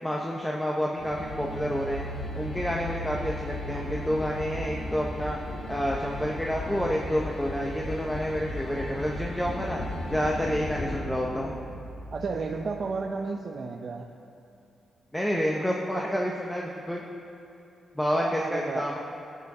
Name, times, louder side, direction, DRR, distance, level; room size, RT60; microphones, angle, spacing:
voice 1, 0.0-2.0 2.4-5.4 5.7-9.8 10.1-11.5 15.1-17.0 17.9-19.0, equal, 5° left, -2 dB, 1.2 m, -29 dB
sound 1, 1.0-13.0, left 1 dB, 55° left, 2.9 m, -36 dB
voice 2, 12.1-14.1 18.2-18.8, right 4 dB, 50° right, 1 dB, 0.8 m, -32 dB
20.0 x 9.9 x 4.3 m, 2.8 s
cardioid pair, 110°, 0 cm